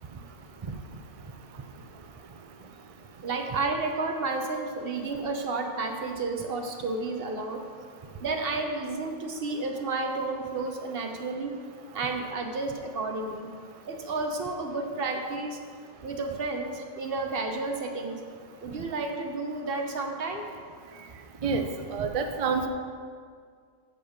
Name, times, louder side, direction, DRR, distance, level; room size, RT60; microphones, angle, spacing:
voice 1, 3.2-7.6 8.2-11.6 11.9-13.5 13.9-15.6 16.0-18.2 18.6-20.4, right 3 dB, 45° right, 3 dB, 1.0 m, -31 dB
voice 2, 21.4-22.7, right 5 dB, 65° right, 5 dB, 0.3 m, -28 dB
7.9 x 6.8 x 6.2 m, 2.1 s
omnidirectional pair, 1.5 m